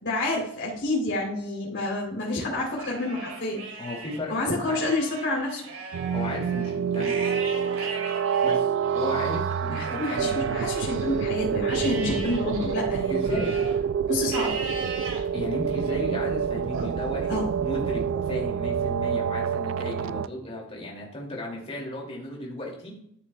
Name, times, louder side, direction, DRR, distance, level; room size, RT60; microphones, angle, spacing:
voice 1, 0.0-3.8 4.3-5.6 9.7-13.4 14.1-14.6 17.3-17.5, left 2 dB, 65° left, -5 dB, 3.4 m, -28 dB
Livestock farm animals working animals, 2.6-4.2 4.6-11.2 11.7-13.8 14.3-15.2 15.7-16.2 16.7-17.8, right 3 dB, 90° right, 2.3 m, -38 dB
voice 2, 3.8-4.8 6.1-7.2 8.4-10.3 13.1-13.6 15.3-22.9, left 1 dB, 30° left, -3 dB, 2.5 m, -34 dB
sound 1, 5.9-20.3, right 7 dB, 70° right, 0.3 m, -27 dB
13.5 x 6.5 x 2.3 m, 0.70 s
head